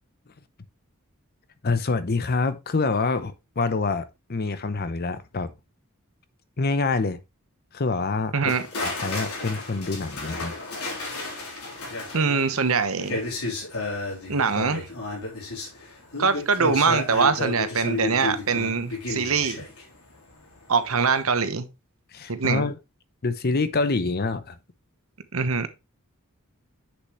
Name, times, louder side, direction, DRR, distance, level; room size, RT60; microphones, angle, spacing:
voice 1, 1.6-5.5 6.6-7.2 7.7-8.3 8.8-10.5 22.1-22.8 23.2-24.6, left 3 dB, 45° left, 0.7 m, -26 dB
voice 2, 8.3-8.6 12.1-13.2 14.3-14.9 16.2-19.6 20.7-21.7 22.3-22.6 25.3-25.7, right 5 dB, 70° right, 1.0 m, -23 dB
sound 1, 8.5-20.6 20.8-21.2, left 2 dB, 85° left, 3.6 m, -32 dB
8.0 x 6.6 x 3.1 m
head